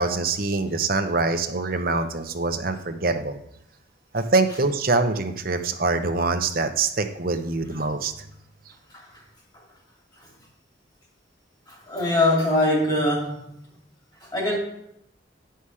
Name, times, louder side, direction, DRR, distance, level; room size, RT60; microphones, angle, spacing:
voice 1, 0.0-3.4 4.1-8.1, right 3 dB, 50° right, 7 dB, 0.8 m, -24 dB
voice 2, 11.7-13.5 14.2-14.6, left 1 dB, 20° left, -2 dB, 2.6 m, -23 dB
10.0 x 5.6 x 4.8 m, 0.77 s
head